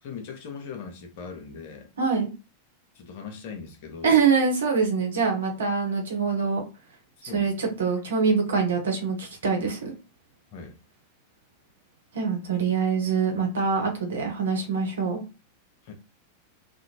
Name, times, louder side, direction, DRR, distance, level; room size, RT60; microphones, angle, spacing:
voice 1, 0.0-1.9 2.9-4.2 7.3-7.7 10.5-10.8 15.8-15.9, left 5 dB, 50° left, 0.8 m, -40 dB
voice 2, 2.0-2.3 4.0-6.6 7.2-9.9 12.1-15.2, right 5 dB, 65° right, 0.9 m, -24 dB
2.6 x 2.5 x 2.8 m
figure-of-eight pair, 90°, 0 cm